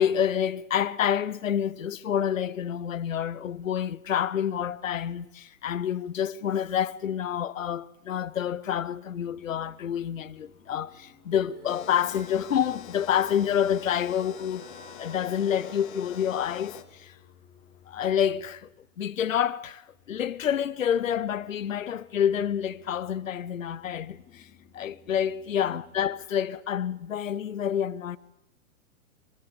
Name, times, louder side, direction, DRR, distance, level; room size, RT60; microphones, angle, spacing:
voice 1, 0.0-14.7 15.0-17.2 17.9-18.7 19.0-24.5 24.7-28.2, left 9 dB, 65° left, 0.8 m, -28 dB
sound 1, 9.1-19.2 19.7-26.3, left 8 dB, 15° left, 1.7 m, -58 dB
sound 2, 11.4-17.6, right 2 dB, 85° right, 4.4 m, -51 dB
sound 3, 11.7-16.8, left 11 dB, 35° left, 1.6 m, -45 dB
22.0 x 20.5 x 8.7 m
figure-of-eight pair, 115°, 43 cm